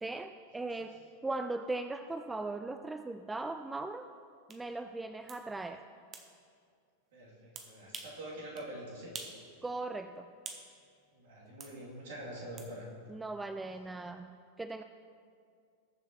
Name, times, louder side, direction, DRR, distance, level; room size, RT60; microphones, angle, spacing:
voice 1, 0.0-4.1 4.5-5.8 9.6-10.3 13.1-14.8, right 2 dB, 10° right, 9 dB, 0.3 m, -39 dB
sound 1, 4.5-4.6 5.3-5.4 6.1-6.3 7.6-8.2 8.6-8.7 9.1-9.4 9.8-10.7 11.6-11.8 12.6-12.7, right 5 dB, 25° right, 1.1 m, -46 dB
voice 2, 7.1-9.1 11.1-12.9, right 1 dB, 55° right, -5 dB, 3.1 m, -45 dB
20.0 x 7.3 x 3.2 m, 2.3 s
figure-of-eight pair, 90°, 0 cm